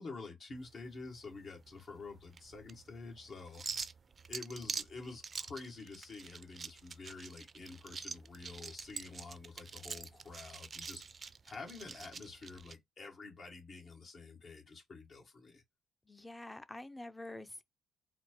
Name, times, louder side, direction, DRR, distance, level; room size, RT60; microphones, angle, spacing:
voice 1, 0.0-3.8 4.3-11.1 11.5-15.6, left 3 dB, 50° left, 1.6 m, -48 dB
sound 1, 0.6-12.8, right 5 dB, 40° right, 0.4 m, -46 dB
voice 2, 16.1-17.6, left 1 dB, 15° left, 0.5 m, -47 dB
4.2 x 2.1 x 4.4 m
cardioid pair, 90°, 0 cm